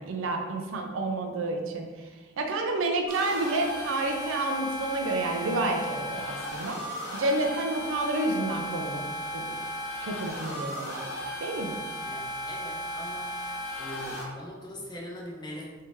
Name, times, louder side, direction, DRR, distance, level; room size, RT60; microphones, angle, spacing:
voice 1, 0.0-1.9 2.4-9.0 9.3-9.6 10.0-11.1 11.4-11.8, right 2 dB, 70° right, 3 dB, 0.4 m, -29 dB
sound 1, 3.1-14.2, equal, 70° left, 1.1 m, -35 dB
voice 2, 12.0-13.5 13.8-15.8, equal, 20° left, -4 dB, 0.7 m, -41 dB
3.4 x 2.7 x 3.1 m, 1.4 s
head